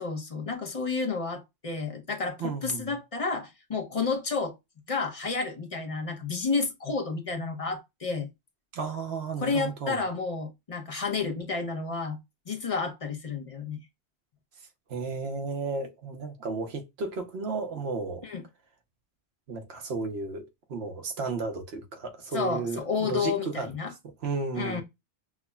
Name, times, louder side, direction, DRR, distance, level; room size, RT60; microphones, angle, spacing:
voice 1, 0.0-4.6 4.9-8.3 9.4-12.2 12.5-13.8 18.2-18.4 22.3-23.9 24.5-24.8, left 4 dB, 40° left, 0.7 m, -31 dB
voice 2, 2.4-3.0 8.7-10.0 14.9-18.3 19.5-23.7 24.0-24.8, right 4 dB, 85° right, 1.1 m, -33 dB
6.0 x 2.1 x 2.2 m
omnidirectional pair, 1.0 m